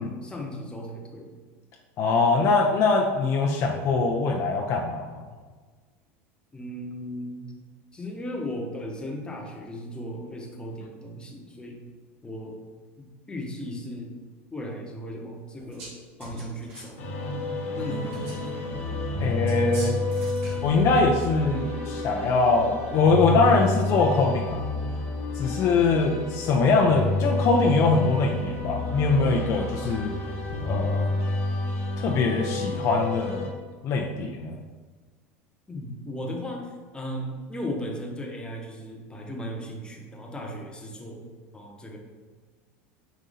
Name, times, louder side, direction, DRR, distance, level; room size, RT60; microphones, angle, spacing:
voice 1, 0.0-1.3 6.5-7.5 7.9-11.9 12.2-12.6 13.0-14.2 14.5-17.1 17.7-18.3 35.7-42.0, equal, 15° left, 0 dB, 0.9 m, -36 dB
voice 2, 2.0-5.3 19.2-20.0 20.6-24.6 25.3-30.1 30.6-31.1 32.0-33.5 33.8-34.5, left 3 dB, 50° left, 1 dB, 0.5 m, -23 dB
sound 1, 15.6-15.9 16.2-16.9 18.1-18.5 19.5-20.7, right 1 dB, 85° right, 1.4 m, -42 dB
sound 2, 17.0-33.5, left 2 dB, 85° left, 1.0 m, -30 dB
5.0 x 2.7 x 4.0 m, 1.4 s
supercardioid pair, 100°, 7 cm